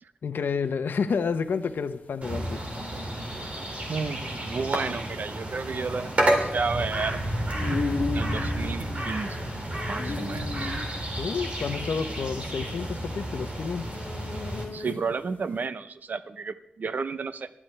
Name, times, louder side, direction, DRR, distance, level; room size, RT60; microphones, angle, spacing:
voice 1, 0.2-2.6 11.2-14.1, left 5 dB, 80° left, 10 dB, 0.8 m, -30 dB
sound 1, 1.1-15.3, left 4 dB, 60° left, 1.5 m, -37 dB
sound 2, 2.2-14.6, right 1 dB, 40° right, 2.5 m, -31 dB
voice 2, 3.9-7.2 8.1-9.5 9.9-10.7 14.7-17.5, right 4 dB, 60° right, 13 dB, 0.6 m, -32 dB
20.0 x 12.5 x 3.3 m, 0.78 s
wide cardioid pair, 155°, 3 cm